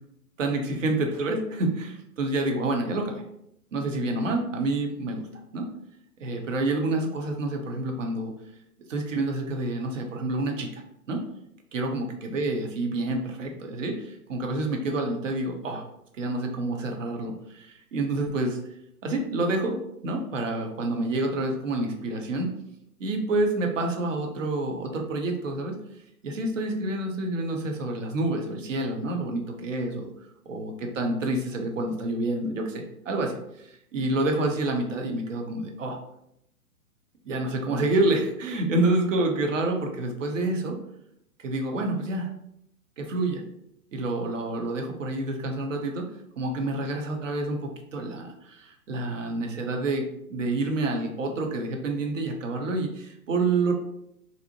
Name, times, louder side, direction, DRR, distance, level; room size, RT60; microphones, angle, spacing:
voice 1, 0.4-3.2 3.7-5.3 5.5-5.7 6.2-8.3 8.9-10.8 11.1-11.2 11.7-15.8 16.1-18.6 19.0-22.5 23.0-25.8 26.2-30.1 30.5-33.4 33.6-36.0 37.2-40.8 41.4-42.3 43.0-43.4 43.9-46.1 46.4-53.7, right 2 dB, 55° right, 3 dB, 0.7 m, -28 dB
2.6 x 2.0 x 2.8 m, 0.76 s
figure-of-eight pair, 125°, 46 cm